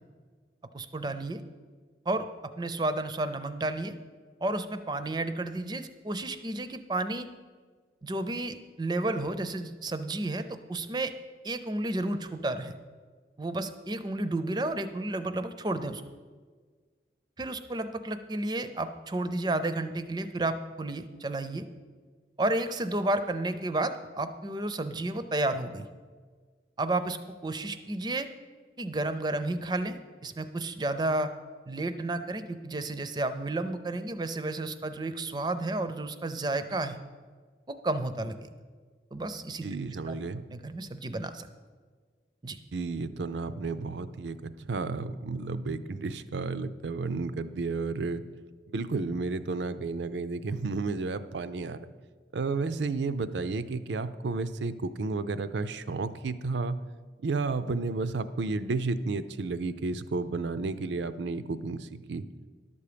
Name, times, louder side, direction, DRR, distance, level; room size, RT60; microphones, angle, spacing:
voice 1, 0.7-1.4 2.1-2.3 2.6-3.9 4.4-7.3 8.0-11.1 11.4-12.8 13.4-16.0 17.4-21.7 22.4-25.9 26.8-27.2 27.4-28.3 28.8-31.3 31.7-37.0 37.7-38.5 39.1-39.7 40.1-40.2 40.5-41.5 42.4-42.6, right 2 dB, 25° right, 10 dB, 0.5 m, -31 dB
voice 2, 39.6-40.4 42.7-48.2 48.7-51.8 52.3-56.8 57.2-62.3, right 3 dB, 80° right, 13 dB, 0.5 m, -32 dB
11.5 x 7.0 x 5.0 m, 1.5 s
head